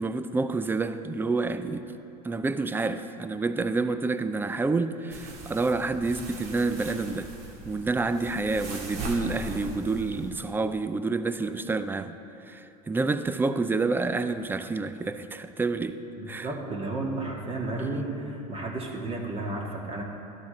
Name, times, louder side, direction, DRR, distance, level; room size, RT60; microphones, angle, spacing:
voice 1, 0.0-1.9 2.2-7.3 7.7-12.2 12.5-16.0 16.3-16.5, right 3 dB, 10° right, 11 dB, 0.4 m, -28 dB
sound 1, 5.1-10.3, right 2 dB, 55° right, 1.9 m, -39 dB
voice 2, 16.2-20.0, right 2 dB, 30° right, 0 dB, 1.7 m, -32 dB
13.0 x 12.0 x 3.9 m, 2.9 s
supercardioid pair, 105°, 20 cm